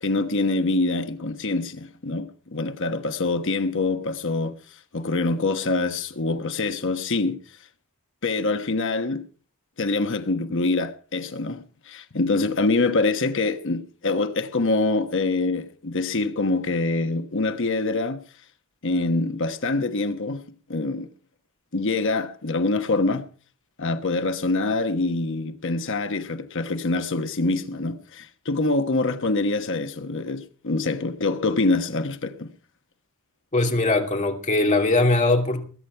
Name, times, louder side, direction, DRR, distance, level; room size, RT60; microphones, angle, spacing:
voice 1, 0.0-4.6 4.9-7.4 8.2-9.3 9.8-18.2 18.8-20.4 20.7-21.1 21.7-23.3 23.8-32.5, left 3 dB, 55° left, 1.2 m, -25 dB
voice 2, 33.5-35.6, left 2 dB, 35° left, 2.7 m, -21 dB
21.0 x 9.5 x 4.5 m
head